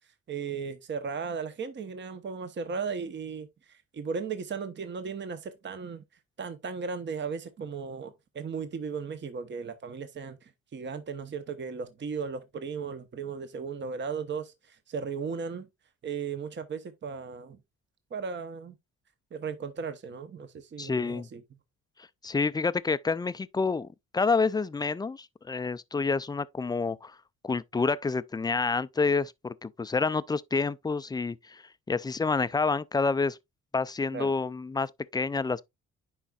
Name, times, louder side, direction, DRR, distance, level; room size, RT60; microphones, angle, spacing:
voice 1, 0.3-6.0 6.4-15.7 16.0-17.6 18.1-18.8 19.3-21.4 34.1-34.3, right 5 dB, 35° right, 0.9 m, -36 dB
voice 2, 20.8-21.3 22.2-23.9 24.1-27.2 27.4-31.6 31.9-33.4 33.7-35.6, left 4 dB, 15° left, 0.3 m, -28 dB
10.0 x 4.7 x 2.4 m
cardioid pair, 90°, 30 cm